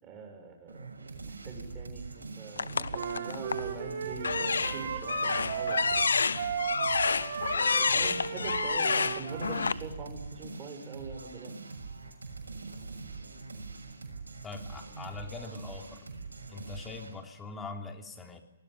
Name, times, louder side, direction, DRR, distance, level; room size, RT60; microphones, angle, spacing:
voice 1, 0.0-0.9 1.2-6.1 7.5-11.5, right 3 dB, 25° right, 4 dB, 7.1 m, -43 dB
sound 1, 0.7-17.2, right 4 dB, 85° right, 6.7 m, -43 dB
sound 2, 2.6-3.7 4.2-9.7, left 5 dB, 80° left, 1.0 m, -29 dB
Wind instrument woodwind instrument, 2.9-9.8, right 7 dB, 55° right, 3.9 m, -36 dB
voice 2, 14.4-16.1 16.5-18.4, left 4 dB, 15° left, 4 dB, 3.4 m, -42 dB
26.5 x 20.5 x 9.6 m, 0.92 s
hypercardioid pair, 130°, 0 cm